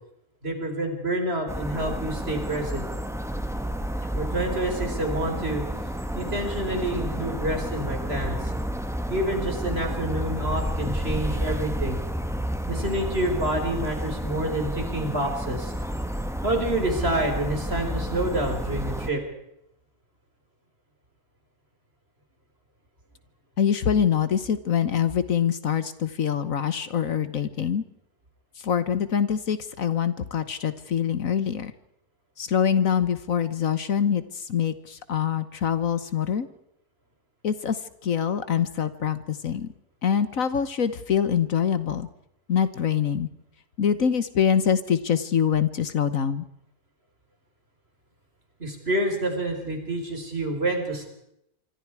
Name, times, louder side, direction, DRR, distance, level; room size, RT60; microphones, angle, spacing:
voice 1, 0.4-2.9 4.1-5.7 6.1-8.5 9.1-12.0 12.7-15.7 16.4-19.2 48.6-51.1, right 1 dB, 40° right, 4 dB, 4.9 m, -28 dB
sound 1, 1.5-19.1, equal, ahead, 1.6 m, -30 dB
voice 2, 23.6-27.8 28.6-31.7 32.4-36.5 37.4-39.7 40.0-42.1 42.5-43.3 43.8-46.4, left 8 dB, 65° left, 13 dB, 1.5 m, -24 dB
25.5 x 25.5 x 4.8 m, 0.81 s
omnidirectional pair, 1.6 m